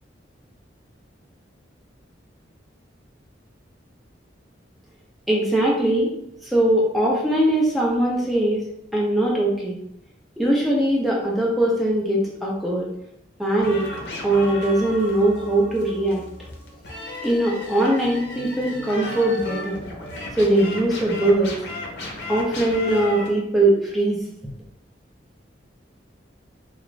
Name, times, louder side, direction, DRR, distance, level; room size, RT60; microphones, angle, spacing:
voice 1, 5.3-6.1 6.4-8.6 8.9-9.8 10.4-12.9 13.4-13.9 14.2-16.2 17.2-19.8 20.4-21.5 22.3-24.2, right 1 dB, ahead, -4 dB, 0.5 m, -21 dB
sound 1, 13.6-23.3, left 2 dB, 65° left, 0.6 m, -35 dB
2.4 x 2.2 x 3.1 m, 0.76 s
head